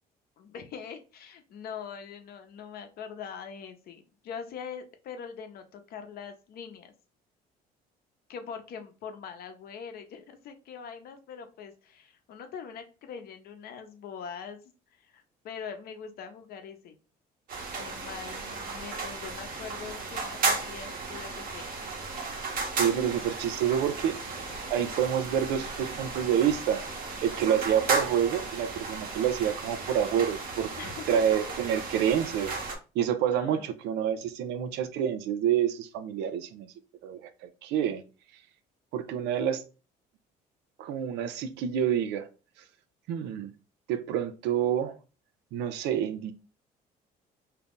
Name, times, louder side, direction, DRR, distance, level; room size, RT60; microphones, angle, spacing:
voice 1, 0.4-6.9 8.3-14.6 15.0-16.9 17.7-21.8 30.8-31.0 33.3-33.7, left 7 dB, 65° left, 0.7 m, -42 dB
sound 1, 17.5-32.7, right 3 dB, 55° right, 1.1 m, -34 dB
voice 2, 22.8-24.2 24.7-26.9 27.2-30.7 31.1-32.5 32.9-36.7 37.0-37.3 37.6-38.0 38.9-39.6 40.8-42.3 43.1-43.5 43.9-45.0 45.5-46.3, right 9 dB, 85° right, 0.5 m, -28 dB
2.8 x 2.5 x 3.5 m
cardioid pair, 110°, 17 cm